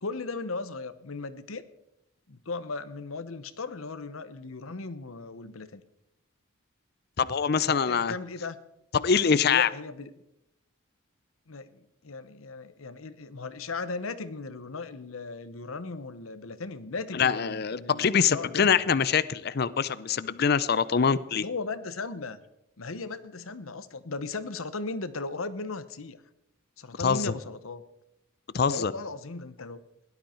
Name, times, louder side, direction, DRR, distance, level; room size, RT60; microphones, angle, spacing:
voice 1, 0.0-1.6 2.3-5.8 7.7-8.6 9.5-10.1 11.5-18.7 21.3-22.4 22.8-26.2 26.8-27.8 28.7-29.8, left 3 dB, 80° left, 14 dB, 1.0 m, -37 dB
voice 2, 7.2-8.1 8.9-9.7 17.1-21.4 27.0-27.3 28.5-28.9, left 6 dB, 50° left, 17 dB, 0.5 m, -24 dB
17.0 x 12.0 x 4.4 m, 0.86 s
head